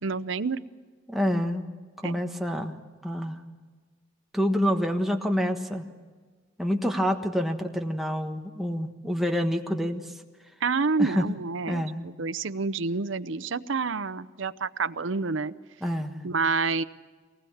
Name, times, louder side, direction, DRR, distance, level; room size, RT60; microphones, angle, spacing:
voice 1, 0.0-0.6 2.0-2.2 10.6-15.5 16.2-16.8, right 4 dB, 70° right, 13 dB, 0.7 m, -28 dB
voice 2, 1.1-1.6 2.0-2.8 3.0-3.4 4.3-5.8 6.6-10.1 11.0-11.3 11.7-12.1 15.8-16.2, equal, ahead, 2 dB, 1.3 m, -27 dB
24.0 x 19.5 x 7.2 m, 1.4 s
head